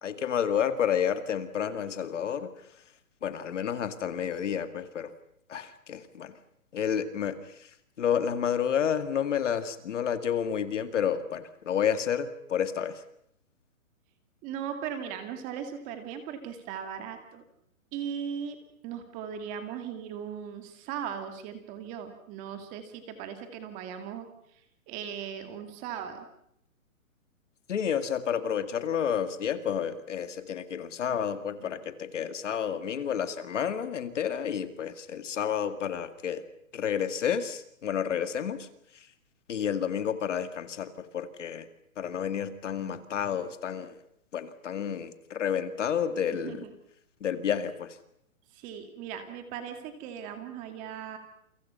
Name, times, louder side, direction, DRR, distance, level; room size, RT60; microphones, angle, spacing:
voice 1, 0.0-2.5 3.2-5.1 5.5-6.4 6.7-7.7 8.0-13.0 27.7-36.4 36.7-38.7 38.9-39.1 39.5-41.7 42.0-44.0 44.3-46.7 47.2-48.0, left 8 dB, 55° left, 11 dB, 2.2 m, -30 dB
voice 2, 14.4-17.4 17.9-18.6 18.8-24.3 24.9-26.3 46.3-46.7 48.5-51.2, right 8 dB, 20° right, 7 dB, 2.2 m, -38 dB
29.0 x 24.0 x 5.6 m, 0.73 s
hypercardioid pair, 165°, 42 cm